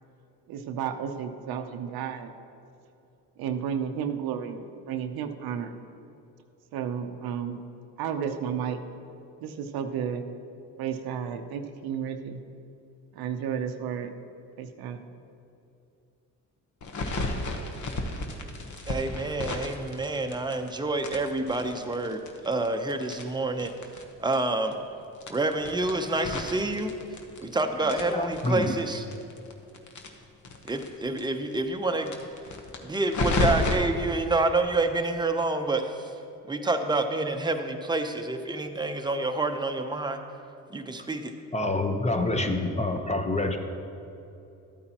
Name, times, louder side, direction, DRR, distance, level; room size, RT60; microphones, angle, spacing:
voice 1, 0.5-2.3 3.4-5.7 6.7-7.6 8.0-8.8 9.4-10.3 10.8-12.4 13.1-14.1 14.6-15.0, right 8 dB, 80° right, 7 dB, 0.7 m, -32 dB
sound 1, 16.8-20.7 21.0-24.0 24.3-24.4 24.7-24.8 25.2-27.5 27.8-30.9 31.2-31.3 31.5-31.6 32.0-33.7, left 2 dB, 50° left, 1.2 m, -32 dB
voice 2, 18.9-23.7 24.2-24.8 25.3-27.0 27.4-29.0 30.6-32.2 32.8-36.1 36.5-40.2 40.7-41.3, right 2 dB, 10° right, 6 dB, 0.7 m, -28 dB
voice 3, 28.1-28.8 41.5-43.6, left 2 dB, 20° left, 5 dB, 0.9 m, -27 dB
12.5 x 8.6 x 2.9 m, 2.7 s
supercardioid pair, 70°, 36 cm